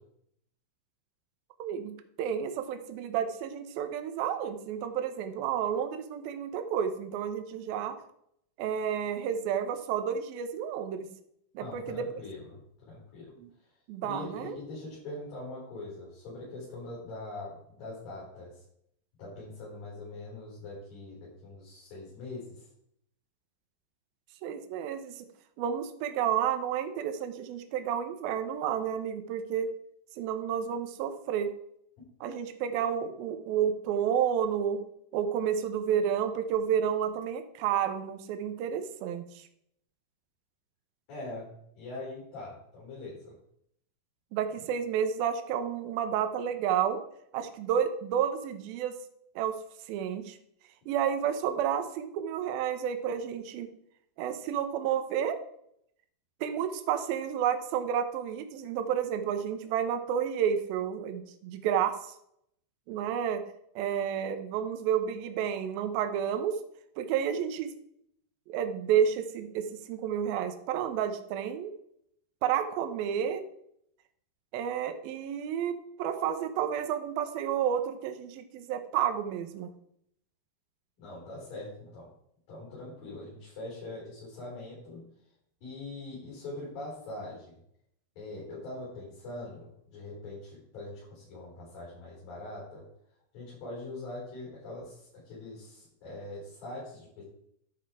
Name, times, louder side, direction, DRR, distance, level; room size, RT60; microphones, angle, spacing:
voice 1, 1.6-7.9 8.6-11.1 11.5-12.1 13.4-13.5 13.9-14.6 24.4-25.3 25.6-29.7 30.2-31.5 32.2-34.8 35.1-39.5 44.3-47.0 47.3-49.0 49.4-49.6 49.9-50.4 50.9-53.7 54.2-55.4 56.4-62.0 62.9-63.4 63.8-66.6 67.0-67.7 68.5-71.7 72.4-73.4 74.5-79.7, right 8 dB, 80° right, 7 dB, 2.1 m, -30 dB
voice 2, 11.6-13.3 14.0-18.5 19.2-22.7 41.1-41.5 41.7-43.3 81.0-82.1 82.5-85.1 85.6-87.6 88.2-92.8 93.3-97.2, left 2 dB, 50° left, -7 dB, 6.5 m, -42 dB
12.5 x 6.0 x 4.7 m, 0.71 s
omnidirectional pair, 5.6 m